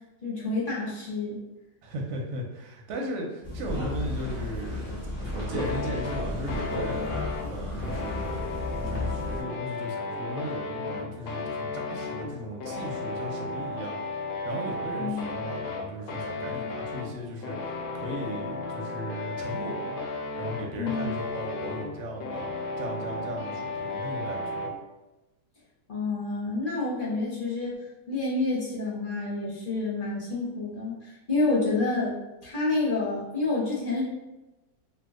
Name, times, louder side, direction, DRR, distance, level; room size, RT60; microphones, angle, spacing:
voice 1, 0.2-1.4 14.9-15.3 20.8-21.2 25.9-27.8 28.1-32.1 32.4-34.0, left 3 dB, 40° left, -6 dB, 0.8 m, -28 dB
voice 2, 1.8-7.1 7.4-20.0 20.4-22.5 22.8-24.7, right 1 dB, 65° right, 0 dB, 0.8 m, -37 dB
sound 1, 3.4-9.4, left 2 dB, 10° left, 0.8 m, -33 dB
sound 2, 5.6-24.8, left 3 dB, 70° left, 0.9 m, -34 dB
2.7 x 2.2 x 3.6 m, 1.0 s
omnidirectional pair, 1.8 m